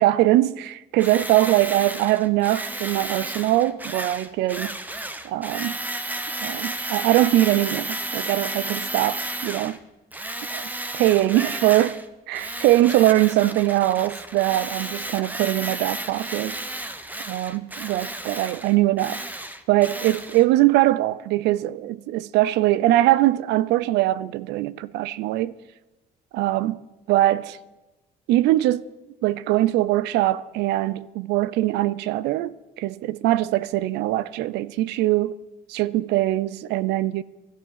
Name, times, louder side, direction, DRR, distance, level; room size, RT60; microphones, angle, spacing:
voice 1, 0.0-4.8 5.2-5.8 6.4-9.8 10.9-12.0 12.3-16.6 17.3-19.3 19.7-25.5 26.3-26.8 27.1-27.6 28.3-28.9 29.2-35.4 35.7-37.2, right 15 dB, 85° right, 0.5 m, -22 dB
Tools, 1.0-9.8 10.1-12.1 12.3-20.4, right 1 dB, 10° right, 1.0 m, -33 dB
13.0 x 12.0 x 6.6 m
cardioid pair, 110°, 17 cm